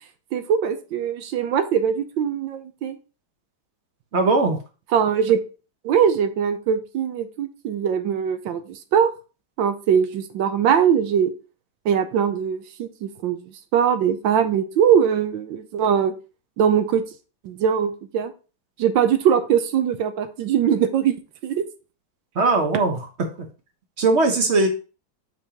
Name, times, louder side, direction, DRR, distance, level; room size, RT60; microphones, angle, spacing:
voice 1, 0.3-3.0 4.9-5.4 5.8-9.1 9.6-11.3 11.8-16.1 16.6-17.0 17.4-18.3 18.8-21.1 21.4-21.6, right 8 dB, 80° right, 9 dB, 1.4 m, -21 dB
voice 2, 4.1-4.6 22.3-23.5 24.0-24.7, right 3 dB, 50° right, 5 dB, 0.8 m, -20 dB
6.2 x 5.3 x 2.8 m, 0.34 s
omnidirectional pair, 2.1 m